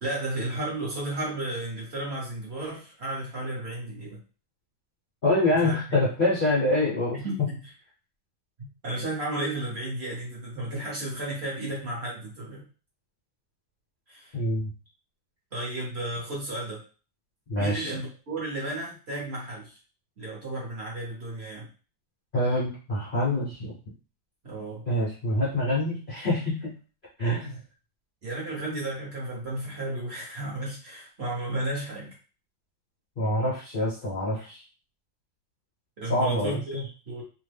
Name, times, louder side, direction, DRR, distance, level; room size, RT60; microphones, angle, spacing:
voice 1, 0.0-4.2 5.6-5.7 7.1-7.3 8.8-12.7 14.1-14.4 15.5-16.8 17.6-19.8 20.2-21.7 24.4-24.9 28.2-32.1 36.0-37.2, right 1 dB, 45° right, -4 dB, 1.0 m, -33 dB
voice 2, 5.2-7.2 14.3-14.7 17.5-17.9 22.3-23.7 24.9-26.7 27.2-27.6 33.2-34.6 36.1-36.8, left 1 dB, 55° left, -7 dB, 0.5 m, -26 dB
3.0 x 2.1 x 3.3 m, 0.36 s
omnidirectional pair, 2.0 m